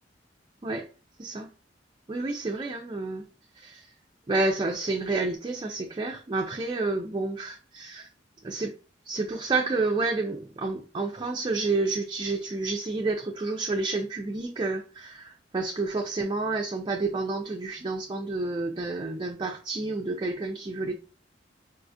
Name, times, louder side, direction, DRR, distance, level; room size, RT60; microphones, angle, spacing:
voice 1, 1.2-1.5 2.1-3.2 3.6-3.9 4.3-8.1 8.4-8.7 9.1-20.9, right 3 dB, 25° right, 0.4 m, -29 dB
4.1 x 2.4 x 2.5 m
head